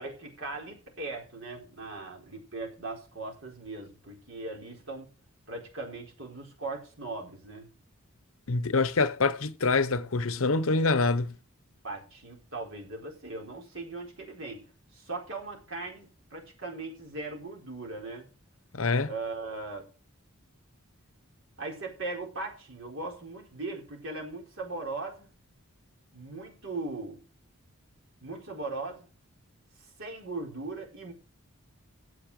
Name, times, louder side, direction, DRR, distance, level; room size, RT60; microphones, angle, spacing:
voice 1, 0.0-5.1 5.5-7.7 11.8-14.6 14.9-18.3 19.0-19.9 21.6-25.3 26.1-27.2 28.2-29.1 30.0-31.1, right 3 dB, 60° right, 4.4 m, -39 dB
voice 2, 8.5-11.3 18.7-19.1, left 3 dB, 65° left, 0.9 m, -25 dB
12.0 x 8.3 x 4.9 m
head